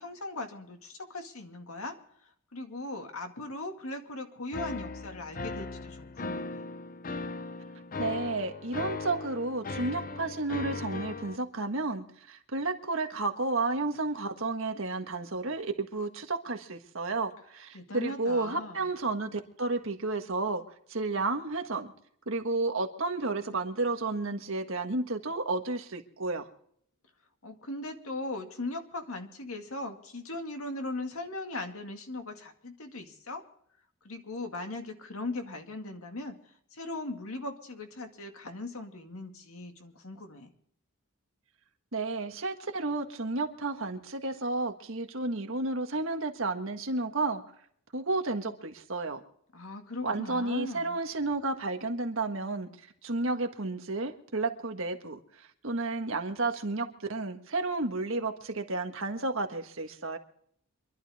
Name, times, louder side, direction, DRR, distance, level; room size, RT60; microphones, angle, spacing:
voice 1, 0.0-2.0 2.5-6.6 17.7-18.9 27.4-33.4 34.0-36.4 36.7-40.5 49.5-51.0, left 2 dB, 70° left, 5 dB, 2.1 m, -39 dB
sound 1, 4.5-11.4, left 3 dB, 40° left, 0.7 m, -38 dB
voice 2, 8.0-20.6 20.9-21.9 22.3-26.5 41.9-47.4 47.9-49.2 50.0-52.7 53.0-60.2, right 3 dB, 60° right, 5 dB, 1.7 m, -32 dB
26.5 x 11.5 x 3.6 m, 0.66 s
head